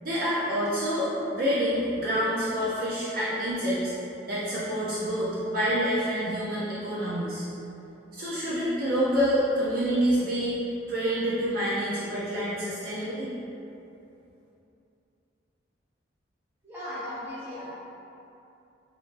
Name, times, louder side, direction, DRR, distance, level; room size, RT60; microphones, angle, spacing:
voice 1, 0.0-3.9 4.3-7.4 8.1-10.6 10.9-13.3, equal, 50° right, -9 dB, 0.5 m, -27 dB
voice 2, 16.6-17.6, left 1 dB, 10° right, -12 dB, 1.0 m, -37 dB
3.2 x 3.0 x 2.5 m, 2.8 s
head